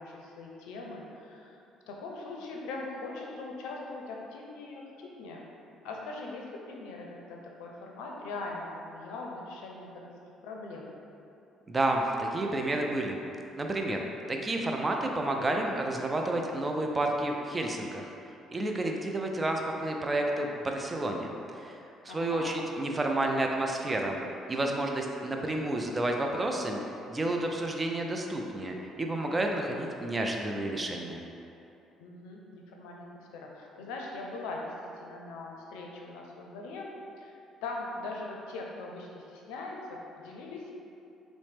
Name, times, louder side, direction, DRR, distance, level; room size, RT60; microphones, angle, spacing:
voice 1, 0.0-1.6 1.9-5.5 5.8-10.1 10.4-10.9 22.1-22.6 32.0-36.9 37.2-37.4 37.6-40.7, left 3 dB, 85° left, -1 dB, 0.4 m, -41 dB
voice 2, 11.7-13.2 13.6-14.0 14.3-18.1 18.5-24.2 24.5-26.8 27.1-31.2, right 1 dB, 25° right, 2 dB, 0.4 m, -30 dB
4.0 x 2.1 x 3.3 m, 2.7 s
supercardioid pair, 75°, 0 cm